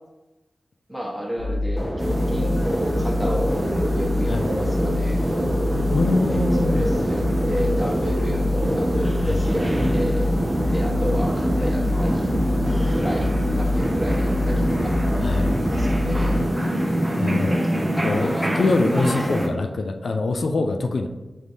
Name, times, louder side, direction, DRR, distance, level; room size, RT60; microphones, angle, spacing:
voice 1, 0.9-3.5 3.9-5.2 6.3-8.4 8.7-10.3 10.7-12.3 12.6-13.3 13.6-15.0 15.7-16.3 18.0-19.3, equal, 5° right, -3 dB, 1.1 m, -31 dB
sound 1, 1.4-16.5, left 1 dB, 25° left, 1.0 m, -25 dB
sound 2, 2.0-19.5, equal, 20° right, 0.7 m, -25 dB
voice 2, 5.9-6.9 9.2-9.5 15.2-15.5 17.2-17.7 18.0-21.1, left 3 dB, 75° left, 4 dB, 0.3 m, -24 dB
5.3 x 3.2 x 2.7 m, 1.1 s
wide cardioid pair, 70°, 0 cm